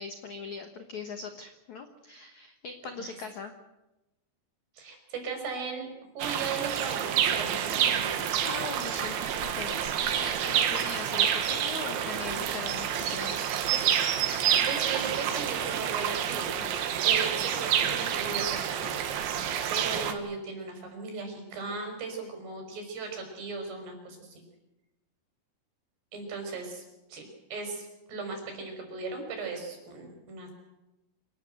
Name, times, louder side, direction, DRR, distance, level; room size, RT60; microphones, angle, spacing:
voice 1, 0.0-3.5 8.4-9.2 9.5-13.6, left 4 dB, 85° left, 6 dB, 1.6 m, -40 dB
voice 2, 4.8-5.9 6.2-8.2 14.4-16.7 17.0-18.9 19.7-24.4 26.1-26.8 27.1-30.5, right 4 dB, 55° right, 4 dB, 7.2 m, -37 dB
sound 1, 6.2-20.1, right 9 dB, 70° right, 3.9 m, -28 dB
27.0 x 19.0 x 7.9 m, 0.98 s
omnidirectional pair, 5.8 m